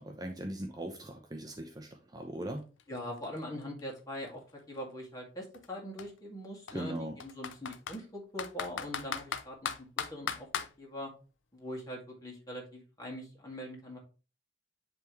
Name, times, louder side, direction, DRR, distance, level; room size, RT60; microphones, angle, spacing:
voice 1, 0.0-2.7 6.7-7.2, right 1 dB, 20° right, 3 dB, 0.6 m, -39 dB
Computer keyboard, 2.4-2.5 2.8-4.8 5.5-5.7 6.0-6.1 6.7-8.0 8.4-10.7, left 7 dB, 70° left, 0.6 m, -37 dB
voice 2, 2.9-10.5 10.8-11.1 11.5-14.0, left 1 dB, 20° left, -2 dB, 2.1 m, -42 dB
10.0 x 3.5 x 3.1 m, 0.33 s
head